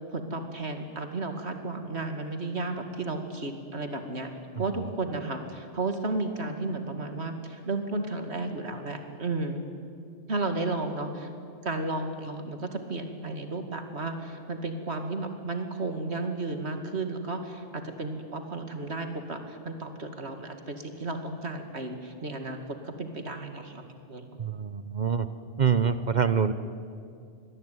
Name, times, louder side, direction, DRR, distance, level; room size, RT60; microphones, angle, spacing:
voice 1, 0.1-4.3 4.6-9.6 10.3-11.3 11.6-22.6 22.8-23.8 24.1-24.4, right 3 dB, 65° right, 6 dB, 2.5 m, -33 dB
voice 2, 24.4-25.3 25.6-26.5, right 6 dB, 45° right, 12 dB, 0.9 m, -25 dB
26.5 x 20.5 x 9.4 m, 2.4 s
omnidirectional pair, 1.2 m